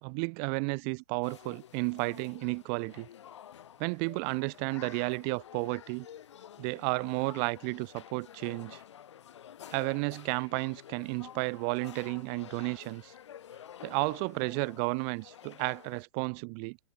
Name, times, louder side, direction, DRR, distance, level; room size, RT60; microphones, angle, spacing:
voice 1, 0.0-3.1 3.8-6.1 6.6-8.8 9.7-13.1 13.8-16.8, right 40 dB or more, 20° right, 0.5 m, -32 dB
sound 1, 1.2-16.0, left 10 dB, 65° left, 3.8 m, -51 dB
hypercardioid pair, 175°, 16 cm